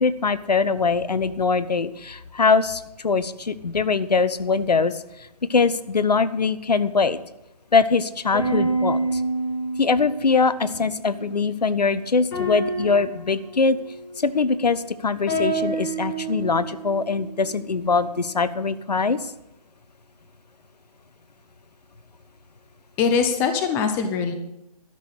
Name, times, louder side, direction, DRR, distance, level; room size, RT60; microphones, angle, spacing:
voice 1, 0.0-7.2 7.7-9.2 9.8-13.8 14.2-19.3, left 4 dB, 75° left, 15 dB, 0.9 m, -22 dB
sound 1, 8.3-11.4 12.3-14.6 15.3-18.2, right 2 dB, 30° left, 6.3 m, -29 dB
voice 2, 23.0-24.3, left 6 dB, 10° left, 7 dB, 0.6 m, -22 dB
13.0 x 6.4 x 8.7 m, 0.89 s
figure-of-eight pair, 150°, 21 cm